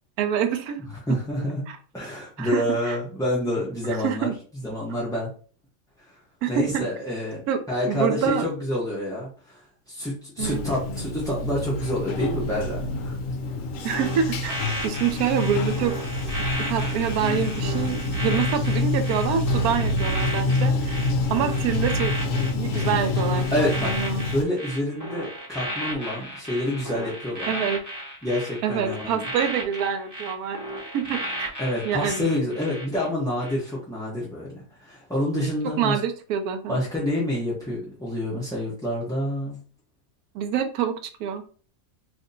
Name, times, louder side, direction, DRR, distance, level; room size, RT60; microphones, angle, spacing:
voice 1, 0.2-0.8 1.7-1.8 2.4-3.0 3.8-4.3 6.4-6.9 7.5-7.6 7.9-8.5 10.4-10.6 13.8-14.6 14.8-15.9 16.7-21.0 21.3-22.1 22.5-24.2 27.5-27.8 28.6-30.6 30.9-31.5 31.8-32.3 35.8-36.8 40.3-41.4, right 8 dB, 80° right, 8 dB, 1.1 m, -26 dB
voice 2, 1.1-1.6 1.9-4.3 4.6-5.3 6.1-6.2 6.5-7.4 7.7-9.6 9.9-13.2 23.5-27.5 28.2-29.3 31.6-36.0 36.7-39.6, left 1 dB, 5° left, -6 dB, 0.6 m, -28 dB
Bathtub (filling or washing), 10.4-24.4, left 2 dB, 65° left, 0.9 m, -27 dB
sound 1, 13.9-33.1 33.4-33.7, right 1 dB, 15° right, 1.0 m, -34 dB
2.8 x 2.6 x 3.9 m, 0.41 s
omnidirectional pair, 1.6 m